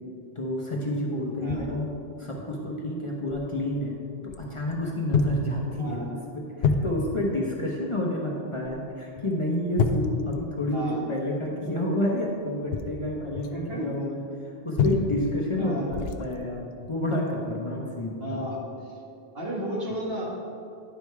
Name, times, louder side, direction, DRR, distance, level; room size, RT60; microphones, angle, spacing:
voice 1, 0.4-4.0 4.2-14.2 14.6-18.4, left 1 dB, 30° left, -2 dB, 0.9 m, -29 dB
sound 1, 1.5-1.8 2.4-2.5 3.3-3.5 4.3-4.8 5.1-5.5 5.9-6.1 6.6-7.3 8.6-8.9 9.2-9.3 9.8-11.0 12.5-13.6 14.8-15.5 15.9-16.3 16.8-17.0, left 4 dB, 75° left, 0.8 m, -28 dB
voice 2, 13.5-14.0 15.6-15.8 18.2-18.6 19.3-20.2, right 1 dB, 70° right, -5 dB, 2.1 m, -32 dB
10.0 x 5.2 x 4.6 m, 2.5 s
omnidirectional pair, 1.0 m